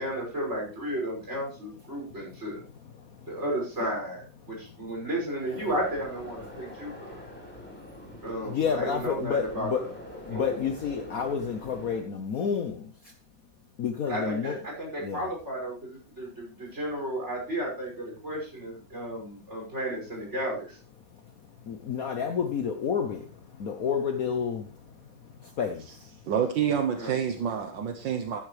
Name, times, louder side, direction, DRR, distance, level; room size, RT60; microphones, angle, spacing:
voice 1, 0.0-2.6 3.3-7.2 8.2-9.7 10.3-10.7 14.1-20.8 26.9-27.1, right 1 dB, 35° right, 6.6 m, -33 dB
sound 1, 5.5-12.0, equal, 5° left, 4.3 m, -44 dB
voice 2, 8.5-9.8 10.3-12.8 13.8-14.6 15.0-15.3 21.7-23.2 23.6-24.7 25.6-25.8, left 7 dB, 55° left, 1.1 m, -29 dB
voice 3, 26.2-28.4, right 8 dB, 70° right, 1.6 m, -28 dB
14.5 x 11.0 x 3.3 m
omnidirectional pair, 2.1 m